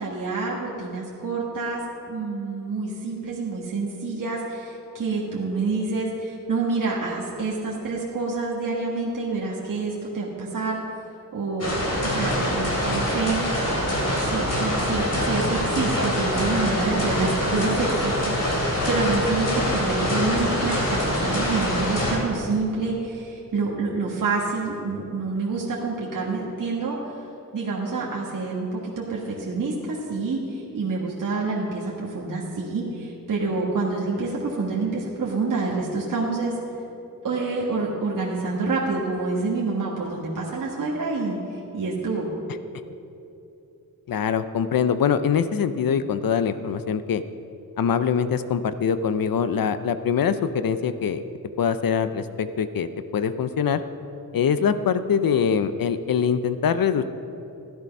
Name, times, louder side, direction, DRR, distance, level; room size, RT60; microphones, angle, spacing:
voice 1, 0.0-1.8 2.1-10.8 11.3-13.5 14.0-27.0 27.5-36.6 37.2-42.3, right 3 dB, 60° right, -4 dB, 1.8 m, -27 dB
sound 1, 11.6-22.2, equal, 45° left, 3.3 m, -24 dB
voice 2, 44.1-47.2 47.8-51.2 51.6-52.9 53.1-53.8 54.3-57.0, left 7 dB, 70° left, 12 dB, 0.7 m, -23 dB
15.5 x 11.0 x 5.4 m, 2.8 s
wide cardioid pair, 165°, 35 cm